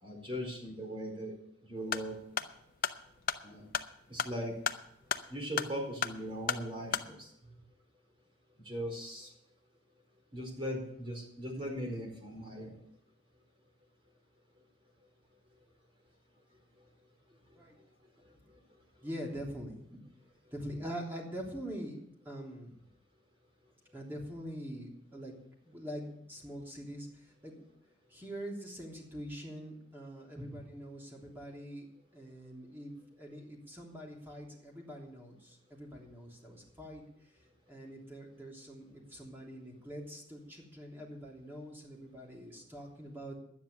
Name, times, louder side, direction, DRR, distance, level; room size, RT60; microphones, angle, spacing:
voice 1, 0.0-1.3 1.6-2.2 3.4-3.7 4.1-4.5 5.3-7.3 8.6-9.3 10.3-12.7, equal, 30° right, 0 dB, 4.7 m, -39 dB
sound 1, 1.8-7.1, left 7 dB, 50° left, 0.7 m, -36 dB
voice 2, 19.0-20.0 20.5-22.8 23.9-25.3 25.6-27.7 28.1-31.9 32.1-37.0 37.7-43.4, equal, 10° right, -2 dB, 3.3 m, -44 dB
11.5 x 9.8 x 6.8 m, 0.74 s
head